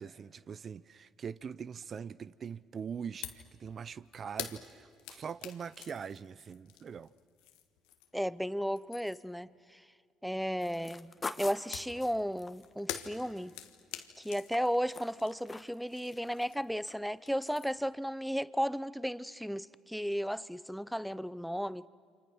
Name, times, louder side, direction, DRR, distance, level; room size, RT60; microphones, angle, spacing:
voice 1, 0.0-7.1, right 7 dB, 45° right, 0.6 m, -42 dB
sound 1, 3.2-3.5 3.8-8.3 8.6-9.4 11.7-16.8 17.1-17.9, left 12 dB, 85° left, 1.4 m, -46 dB
voice 2, 8.1-9.8 10.2-13.5 14.2-21.9, equal, ahead, 0.7 m, -34 dB
sound 2, 10.6-14.0 14.3-15.8 16.1-16.5 16.9-17.0, left 4 dB, 30° left, 1.4 m, -45 dB
29.0 x 26.5 x 6.2 m
supercardioid pair, 65°, 0 cm